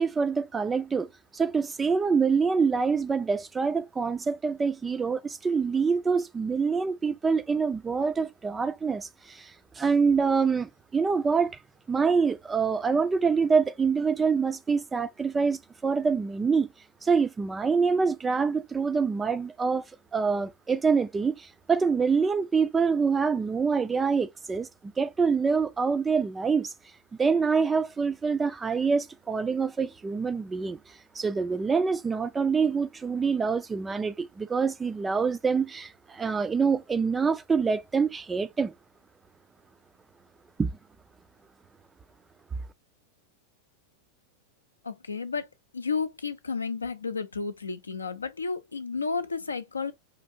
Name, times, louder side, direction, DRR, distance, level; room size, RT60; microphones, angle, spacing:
voice 1, 0.0-11.6 11.9-16.7 17.0-19.8 20.1-26.7 27.2-38.7 40.6-40.7, right 5 dB, 15° right, 0.4 m, -26 dB
voice 2, 44.8-45.5 45.7-49.9, left 4 dB, 75° left, 0.5 m, -32 dB
5.1 x 2.5 x 2.6 m
figure-of-eight pair, 90°, 0 cm